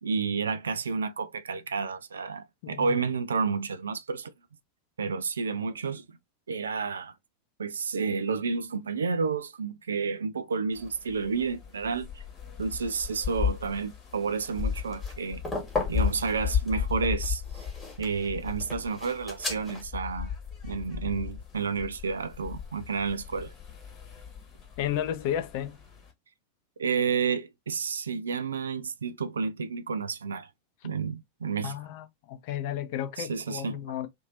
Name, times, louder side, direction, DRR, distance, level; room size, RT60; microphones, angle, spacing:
voice 1, 0.0-4.3 5.0-6.2 6.5-7.1 7.6-12.2 12.6-15.4 15.9-17.7 18.0-20.3 20.6-23.5 26.8-30.5 30.8-31.7 33.2-33.8, right 5 dB, 70° right, 0.3 m, -30 dB
voice 2, 2.6-3.0 24.8-25.8 31.6-34.1, left 10 dB, 50° left, 0.5 m, -33 dB
sound 1, 10.7-26.1, left 8 dB, 30° left, 1.2 m, -35 dB
sound 2, 14.4-19.8, left 3 dB, 10° left, 1.5 m, -36 dB
2.9 x 2.6 x 2.5 m
figure-of-eight pair, 90°, 0 cm